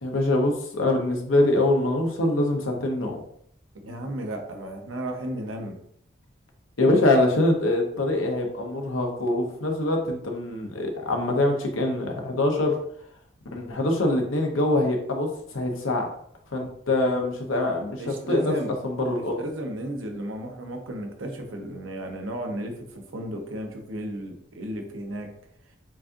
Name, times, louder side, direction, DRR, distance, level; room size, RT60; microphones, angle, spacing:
voice 1, 0.0-3.2 6.8-12.8 13.5-16.1 16.5-18.0 18.3-18.5 18.8-19.3, left 2 dB, 85° left, 2 dB, 0.9 m, -24 dB
voice 2, 3.7-5.8 18.0-18.7 19.4-25.3, right 1 dB, 85° right, 3 dB, 0.8 m, -34 dB
7.3 x 2.5 x 2.6 m, 0.67 s
head